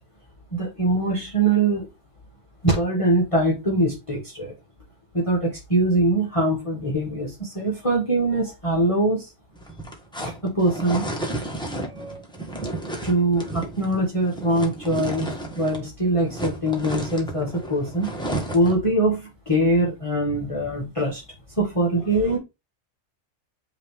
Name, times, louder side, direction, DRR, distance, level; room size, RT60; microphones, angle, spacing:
voice 1, 0.5-1.8 2.6-4.5 5.1-9.3 10.2-11.1 11.9-12.2 13.0-18.1 18.5-21.2 21.6-22.4, right 1 dB, 25° left, -3 dB, 1.6 m, -23 dB
sound 1, 9.6-18.9, right 1 dB, 5° left, 1.4 m, -32 dB
8.7 x 3.3 x 3.6 m, 0.24 s
omnidirectional pair, 1.3 m